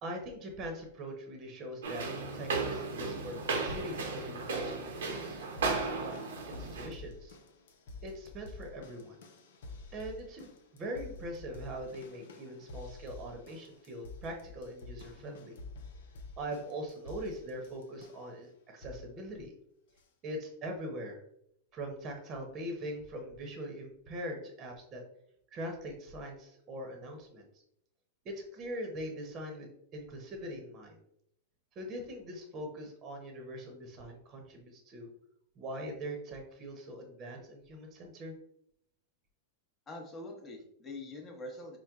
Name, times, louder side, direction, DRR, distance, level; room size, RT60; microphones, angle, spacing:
voice 1, 0.0-2.1 2.3-5.4 5.9-6.2 6.5-7.4 8.0-9.2 9.9-15.6 16.4-19.5 20.2-21.2 21.7-25.0 25.5-27.5 28.2-31.0 31.7-35.1 35.6-38.4, equal, 30° right, 3 dB, 0.9 m, -42 dB
sound 1, 1.8-6.9, right 4 dB, 85° right, 0.8 m, -35 dB
sound 2, 5.2-18.4 18.8-19.2 20.0-20.1, left 3 dB, 75° left, 0.6 m, -49 dB
voice 2, 39.9-41.8, left 2 dB, 20° left, 1 dB, 0.9 m, -44 dB
4.4 x 2.1 x 3.5 m, 0.72 s
hypercardioid pair, 135°, 0 cm